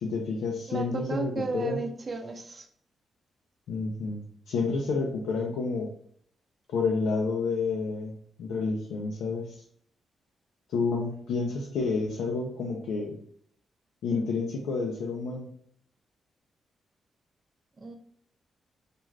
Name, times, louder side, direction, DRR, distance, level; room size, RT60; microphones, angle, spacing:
voice 1, 0.0-1.8 3.7-5.9 6.7-8.1 8.4-9.6 10.7-13.2 14.0-15.5, left 4 dB, 90° left, -1 dB, 0.4 m, -29 dB
voice 2, 0.7-2.7 17.8-18.0, right 3 dB, 40° right, 5 dB, 0.5 m, -34 dB
2.4 x 2.2 x 3.1 m, 0.64 s
cardioid pair, 75°, 0 cm